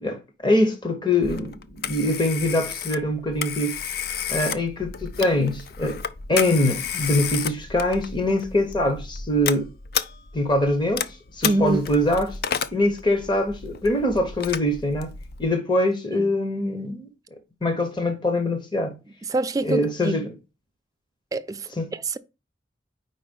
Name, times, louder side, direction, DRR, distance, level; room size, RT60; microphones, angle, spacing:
voice 1, 0.0-3.8 4.3-6.0 6.3-9.7 10.3-12.4 12.7-15.1 15.4-17.1 17.6-19.0 19.6-20.3 21.8-21.9, left 1 dB, 25° left, 0.9 m, -23 dB
Telephone, 1.2-15.5, left 7 dB, 55° left, 0.4 m, -32 dB
voice 2, 11.4-11.8 16.1-16.3 19.3-20.2 21.3-22.2, right 2 dB, 20° right, 0.3 m, -25 dB
4.8 x 4.0 x 5.2 m
head